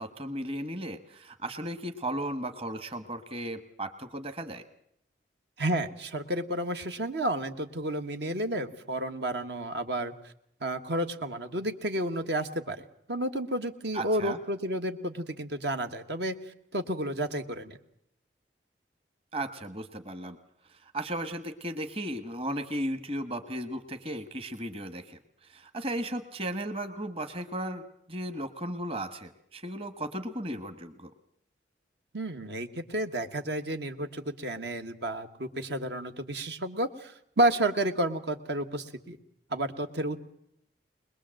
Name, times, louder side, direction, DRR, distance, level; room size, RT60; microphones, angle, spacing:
voice 1, 0.0-4.6 13.9-14.4 19.3-20.4 20.7-27.8 28.1-31.1, right 1 dB, 30° right, 8 dB, 1.3 m, -35 dB
voice 2, 5.6-10.3 10.6-16.3 16.7-17.8 32.1-39.2 39.5-40.2, right 1 dB, 70° right, 6 dB, 1.4 m, -31 dB
21.5 x 21.5 x 7.7 m, 0.73 s
head